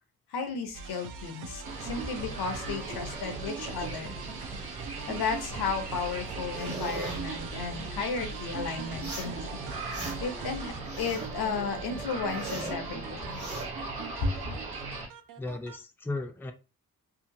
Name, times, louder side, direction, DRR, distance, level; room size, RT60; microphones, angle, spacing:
voice 1, 0.3-4.1 5.1-9.6 10.2-13.4 14.2-14.3, left 5 dB, 85° left, 6 dB, 0.7 m, -34 dB
sound 1, 0.7-15.8, right 5 dB, 55° right, 0.5 m, -44 dB
sound 2, 1.6-15.1, right 3 dB, 75° right, 1.0 m, -38 dB
sound 3, 6.5-7.2 8.9-9.4 9.7-10.4 10.7-11.4 11.8-12.8 13.2-13.7, right 2 dB, 40° right, 1.2 m, -39 dB
voice 2, 15.4-16.5, left 2 dB, 5° left, 6 dB, 0.4 m, -35 dB
2.8 x 2.4 x 2.6 m, 0.32 s
supercardioid pair, 45°, 38 cm